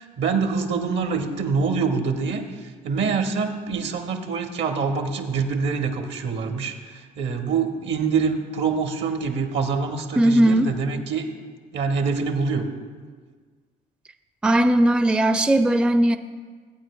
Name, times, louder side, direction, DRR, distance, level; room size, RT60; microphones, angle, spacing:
voice 1, 0.0-11.3 11.7-12.7, right 5 dB, 65° right, 5 dB, 1.1 m, -25 dB
voice 2, 10.2-10.7 14.4-16.2, right 1 dB, 5° right, 10 dB, 0.4 m, -18 dB
15.0 x 9.1 x 2.3 m, 1.5 s
hypercardioid pair, 50°, 20 cm